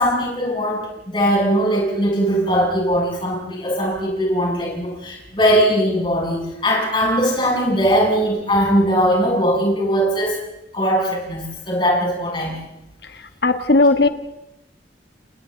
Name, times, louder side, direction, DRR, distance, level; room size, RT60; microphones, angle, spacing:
voice 1, 0.0-10.4 10.7-12.5, equal, 25° left, -2 dB, 7.8 m, -20 dB
voice 2, 13.4-14.1, left 2 dB, 65° left, 8 dB, 1.6 m, -15 dB
30.0 x 28.5 x 4.0 m, 0.88 s
head